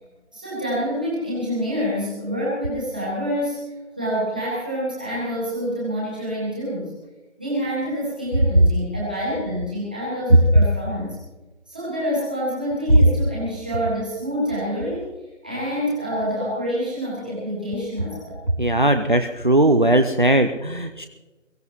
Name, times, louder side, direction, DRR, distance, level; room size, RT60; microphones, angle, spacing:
voice 1, 0.3-3.6 4.0-6.9 7.4-11.2 11.7-15.1 15.4-18.4, equal, 5° right, -7 dB, 2.0 m, -27 dB
voice 2, 18.6-21.1, right 1 dB, 40° right, 7 dB, 0.7 m, -19 dB
22.5 x 15.5 x 3.1 m, 1.1 s
figure-of-eight pair, 180°, 38 cm